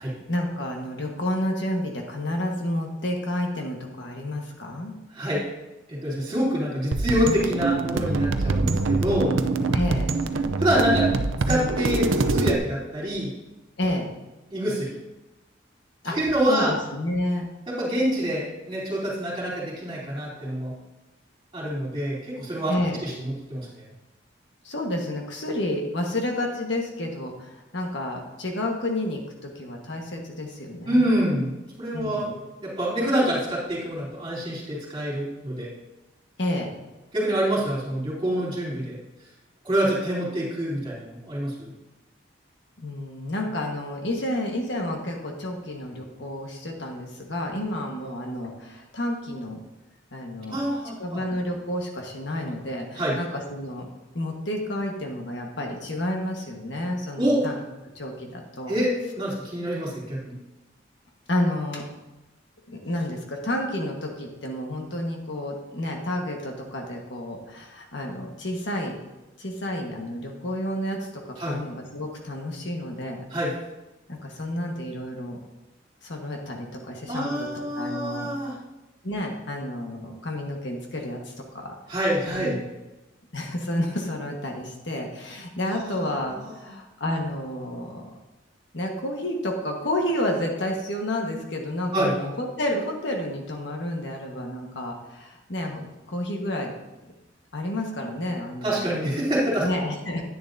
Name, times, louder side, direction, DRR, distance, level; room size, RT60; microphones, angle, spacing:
voice 1, 0.3-4.9 9.7-10.1 13.8-14.1 16.0-16.2 16.5-17.5 22.7-23.0 24.6-31.1 31.9-32.3 36.4-36.7 42.8-49.6 50.1-50.6 51.0-53.9 54.1-57.6 57.9-58.7 61.3-61.8 62.7-69.0 69.4-73.2 74.1-75.4 76.0-77.5 77.8-78.3 79.0-81.7 82.2-82.6 83.3-88.0 88.7-96.7 97.5-98.9 99.6-100.2, left 1 dB, 65° left, 1 dB, 1.4 m, -30 dB
voice 2, 5.1-5.5 5.9-9.4 10.6-11.1 11.5-13.3 14.5-15.0 16.0-16.7 17.7-20.7 21.5-22.8 23.0-23.8 30.8-35.7 37.1-39.0 39.6-41.7 50.5-51.2 53.0-53.2 57.2-57.4 58.7-60.4 71.4-71.6 73.3-73.5 77.1-78.6 81.9-82.5 85.9-86.1 86.6-86.7 91.9-92.1 98.6-99.7, equal, 25° right, -6 dB, 3.3 m, -26 dB
sound 1, 6.9-12.6, right 3 dB, 80° right, 0.6 m, -24 dB
10.5 x 10.0 x 2.7 m, 1.0 s
head